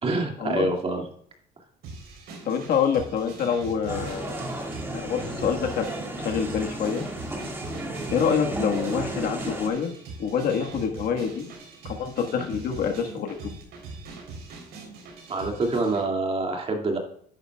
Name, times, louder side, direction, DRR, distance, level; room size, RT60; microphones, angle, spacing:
voice 1, 0.0-1.1 15.3-17.0, right 2 dB, 35° right, 2 dB, 2.2 m, -26 dB
sound 1, 1.8-16.1, right 3 dB, 80° right, 3.6 m, -41 dB
voice 2, 2.4-4.4 4.9-5.9 6.2-7.0 8.1-9.9 10.2-11.5 11.8-13.4, left 7 dB, 65° left, 3 dB, 1.5 m, -26 dB
sound 2, 3.9-9.7, right 1 dB, 15° right, 1.9 m, -33 dB
11.0 x 9.5 x 2.3 m, 0.63 s
cardioid pair, 110°, 17 cm